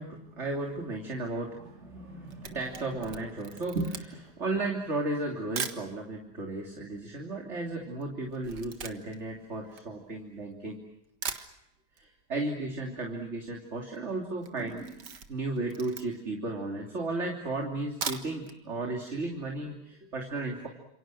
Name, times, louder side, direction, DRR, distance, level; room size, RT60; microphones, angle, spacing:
voice 1, 0.0-10.8 12.0-20.7, right 2 dB, 40° right, 1 dB, 3.4 m, -34 dB
Camera, 2.0-5.9 6.6-6.7 6.9-10.5 10.9-11.0 11.2-12.1 12.3-12.4 12.7-12.8 13.0-13.4 13.8-14.0 14.4-16.4 16.9-17.0 17.8-18.6 18.9-19.0 19.4-19.5, right 6 dB, 75° right, 2.2 m, -40 dB
29.5 x 27.5 x 6.4 m, 0.82 s
omnidirectional pair, 1.8 m